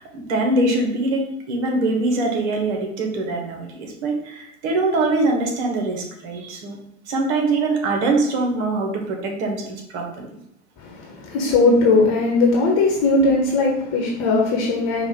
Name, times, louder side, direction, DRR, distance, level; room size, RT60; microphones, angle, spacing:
voice 1, 0.0-6.8 7.1-10.3, right 2 dB, 60° right, 2 dB, 1.3 m, -23 dB
voice 2, 10.8-15.1, left 3 dB, 45° left, 0 dB, 1.1 m, -19 dB
4.9 x 2.5 x 3.7 m, 0.78 s
figure-of-eight pair, 80°, 38 cm